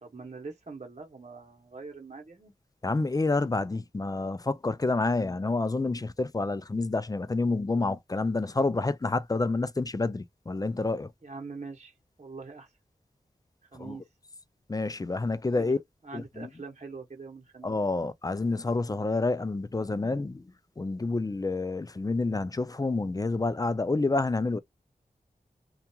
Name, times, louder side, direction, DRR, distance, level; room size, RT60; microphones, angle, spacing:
voice 1, 0.0-2.5 11.2-12.7 13.7-14.0 15.5-15.7 16.0-17.8, right 4 dB, 45° right, 0.9 m, -43 dB
voice 2, 2.8-11.1 13.8-14.0 14.7-15.8 16.1-16.5 17.6-20.4 20.8-24.6, left 3 dB, 25° left, 0.4 m, -28 dB
2.8 x 2.3 x 2.3 m
cardioid pair, 45°, 16 cm